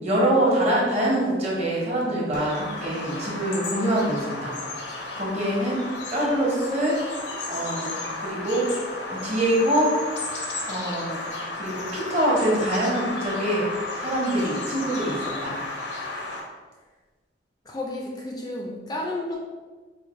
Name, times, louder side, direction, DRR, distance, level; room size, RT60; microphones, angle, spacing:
voice 1, 0.0-4.6 5.1-5.8 6.1-7.0 7.5-7.9 8.2-8.7 9.1-9.9 10.7-11.2 11.6-13.6 14.0-15.6, right 1 dB, 40° right, -4 dB, 1.1 m, -24 dB
Bird vocalization bird call bird song, 2.3-16.4, left 2 dB, 90° left, 0.8 m, -33 dB
voice 2, 17.7-19.4, left 2 dB, 20° left, -1 dB, 0.4 m, -32 dB
4.7 x 2.5 x 3.1 m, 1.3 s
head